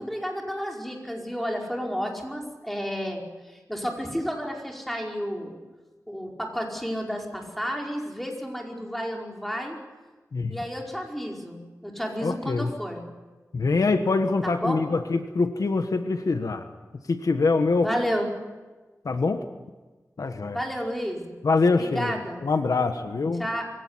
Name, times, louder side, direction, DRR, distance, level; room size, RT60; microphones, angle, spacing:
voice 1, 0.0-5.6 6.1-9.8 10.5-13.0 14.4-14.8 17.8-18.3 20.5-21.4 21.8-22.4 23.4-23.7, equal, 5° left, 0 dB, 5.1 m, -31 dB
voice 2, 10.3-10.6 12.2-12.8 13.5-17.9 19.0-19.4 20.2-20.6 21.4-23.5, left 3 dB, 85° left, 8 dB, 1.4 m, -24 dB
23.5 x 17.0 x 9.8 m, 1.3 s
wide cardioid pair, 70°, 6 cm